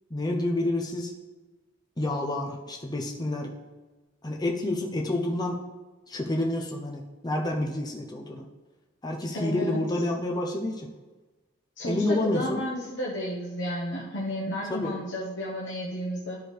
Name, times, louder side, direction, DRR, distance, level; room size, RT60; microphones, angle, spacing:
voice 1, 0.1-1.1 2.0-3.5 4.2-5.6 6.1-8.4 9.0-10.9 11.8-12.6 14.7-14.9, left 1 dB, 20° left, 0 dB, 0.7 m, -29 dB
voice 2, 9.3-9.8 11.8-16.4, equal, 65° left, -5 dB, 1.1 m, -32 dB
12.5 x 4.8 x 3.3 m, 1.2 s
head